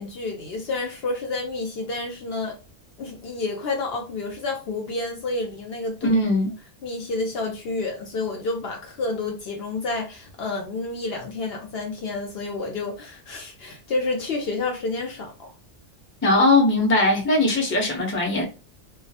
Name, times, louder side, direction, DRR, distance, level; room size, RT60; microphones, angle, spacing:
voice 1, 0.0-2.5 3.0-6.2 6.8-15.5, left 3 dB, 65° left, 0.7 m, -29 dB
voice 2, 6.0-6.5 16.2-18.4, left 2 dB, 15° left, 0.5 m, -20 dB
2.3 x 2.0 x 2.7 m
omnidirectional pair, 1.2 m